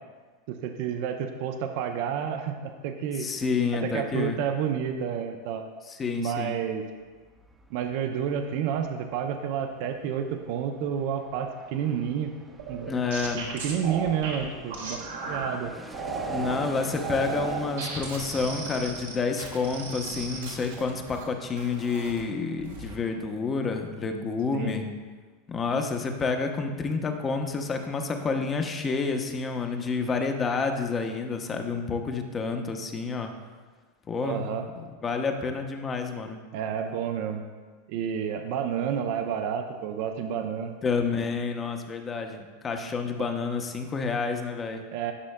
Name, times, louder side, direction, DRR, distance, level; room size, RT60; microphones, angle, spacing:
voice 1, 0.5-3.3 3.8-5.6 6.2-6.8 7.7-12.3 12.7-12.9 13.6-15.0 15.2-15.7 24.5-24.8 34.2-34.7 36.5-37.4 37.9-40.7 43.2-43.3 44.9-45.1, right 8 dB, 60° right, 6 dB, 0.6 m, -30 dB
voice 2, 3.2-4.4 5.9-6.6 12.9-13.5 16.3-24.9 25.5-33.3 34.1-34.5 34.8-36.4 40.8-44.8, left 4 dB, 25° left, 5 dB, 0.8 m, -29 dB
Fixed-wing aircraft airplane, 7.0-24.0 24.3-24.4, right 2 dB, 10° right, 0.7 m, -48 dB
sound 1, 12.6-15.5 15.9-16.6 17.0-21.2 21.6-22.2 22.6-23.0, right 4 dB, 80° right, 1.5 m, -35 dB
11.0 x 6.1 x 2.2 m, 1.4 s
hypercardioid pair, 95°, 0 cm